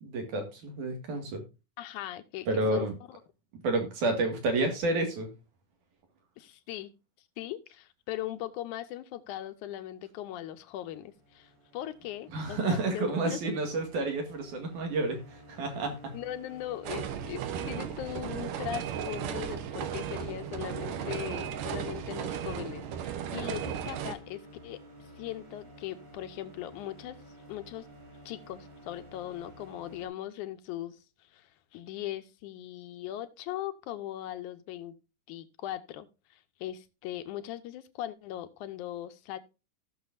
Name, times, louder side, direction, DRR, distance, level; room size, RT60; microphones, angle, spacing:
voice 1, 0.0-1.4 2.5-3.0 3.6-5.3 12.3-16.1, right 2 dB, 70° right, 3.4 m, -30 dB
voice 2, 1.8-2.9 6.4-6.9 7.4-13.5 16.1-24.8 25.2-27.2 27.5-27.9 28.3-35.0 35.3-39.4, left 13 dB, 80° left, 2.2 m, -39 dB
sound 1, 10.8-30.1, equal, 50° right, 5.4 m, -52 dB
sound 2, 16.8-24.1, right 9 dB, 85° right, 2.6 m, -35 dB
16.5 x 6.6 x 2.6 m
omnidirectional pair, 3.7 m